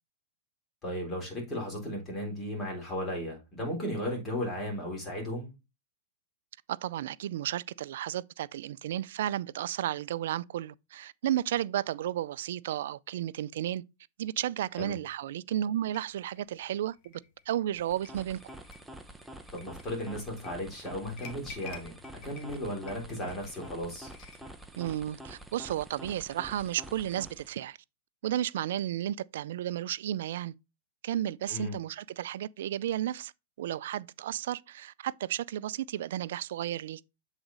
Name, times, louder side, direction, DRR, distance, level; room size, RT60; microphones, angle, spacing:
voice 1, 0.8-5.5 14.8-14.9 19.5-24.1 31.5-31.8, equal, 20° left, 3.5 m, -35 dB
voice 2, 6.7-13.8 14.2-17.2 17.5-18.4 24.8-27.8 28.2-30.5 31.0-33.3 33.6-37.1, right 12 dB, 65° right, 0.4 m, -33 dB
sound 1, 15.9-24.5, left 5 dB, 40° left, 1.2 m, -52 dB
sound 2, 17.7-27.6, right 1 dB, 5° right, 0.7 m, -47 dB
7.9 x 4.0 x 3.9 m
hypercardioid pair, 140°, 0 cm